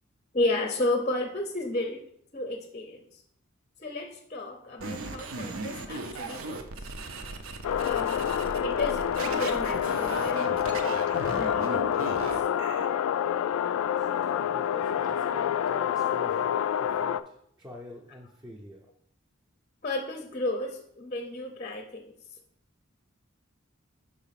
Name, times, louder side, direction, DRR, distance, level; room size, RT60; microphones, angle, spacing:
voice 1, 0.3-3.2 3.8-6.9 7.8-8.3 8.6-12.4 19.8-22.1, left 2 dB, 30° left, 5 dB, 0.6 m, -33 dB
sound 1, 4.8-12.9, right 3 dB, 75° right, 0.7 m, -37 dB
sound 2, 7.6-17.2, left 9 dB, 85° left, 0.3 m, -27 dB
voice 2, 14.0-17.3 17.6-18.8, left 1 dB, 15° right, -2 dB, 0.6 m, -46 dB
5.1 x 4.1 x 5.7 m, 0.69 s
head